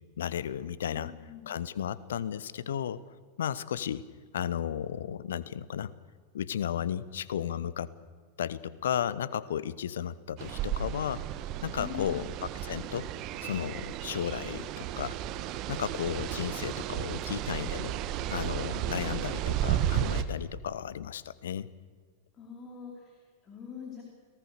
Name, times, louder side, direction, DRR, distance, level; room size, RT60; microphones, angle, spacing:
voice 1, 0.2-1.1 1.5-4.1 4.3-5.9 6.3-7.9 8.4-11.2 11.6-12.3 12.6-13.1 13.4-15.2 15.7-18.0 18.3-21.7, left 9 dB, 60° left, 19 dB, 0.9 m, -34 dB
voice 2, 0.9-1.5 11.8-12.2 22.4-24.0, left 7 dB, 30° left, 1 dB, 3.9 m, -44 dB
sound 1, 10.4-20.2, right 11 dB, 40° right, 1.3 m, -33 dB
29.5 x 18.5 x 6.8 m, 1.5 s
figure-of-eight pair, 90°, 0 cm